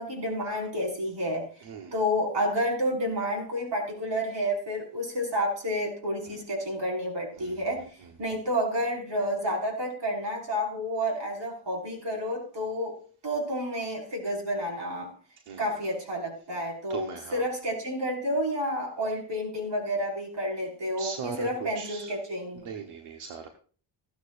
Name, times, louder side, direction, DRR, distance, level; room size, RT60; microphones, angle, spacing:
voice 1, 0.0-1.5 1.9-7.8 8.2-13.0 13.2-15.1 15.6-22.6, equal, 55° right, 0 dB, 5.6 m, -30 dB
voice 2, 1.6-1.9 6.2-6.4 7.3-7.6 8.0-8.3 15.4-15.7 16.9-17.4 21.0-22.1 22.5-23.5, right 6 dB, 90° right, 4 dB, 1.3 m, -39 dB
15.5 x 13.0 x 2.6 m, 0.40 s
cardioid pair, 80°, 49 cm